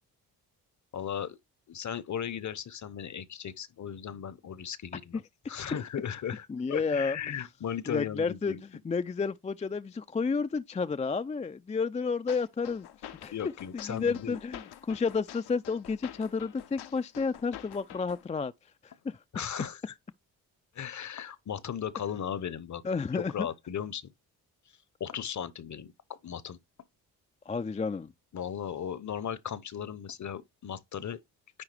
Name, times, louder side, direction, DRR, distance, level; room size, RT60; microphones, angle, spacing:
voice 1, 0.9-1.4 1.7-5.2 5.5-8.6 13.3-14.4 19.3-19.9 20.7-22.8 23.1-24.1 25.0-26.6 28.3-31.2, left 8 dB, 45° left, 0.9 m, -36 dB
voice 2, 6.5-7.2 7.9-8.6 8.8-12.9 13.2-13.3 13.7-18.5 18.8-19.2 22.8-23.5 27.5-28.1, left 5 dB, 20° left, 0.4 m, -31 dB
sound 1, 12.3-18.3, left 11 dB, 70° left, 0.9 m, -47 dB
9.9 x 3.5 x 3.4 m
supercardioid pair, 60°, 40 cm